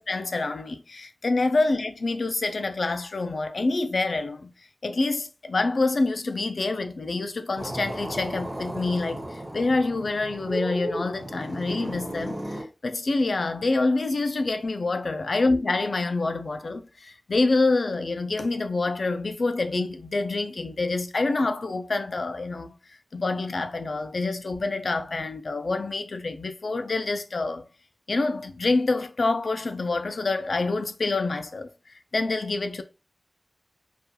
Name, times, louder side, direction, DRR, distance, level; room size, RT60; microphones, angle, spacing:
voice 1, 0.0-4.5 4.8-22.8 23.1-27.6 28.1-31.7 32.1-32.8, left 3 dB, 85° left, 0.3 m, -26 dB
sound 1, 7.6-12.6, right 1 dB, 55° right, 1.1 m, -34 dB
2.3 x 2.2 x 2.8 m
wide cardioid pair, 55°, 0 cm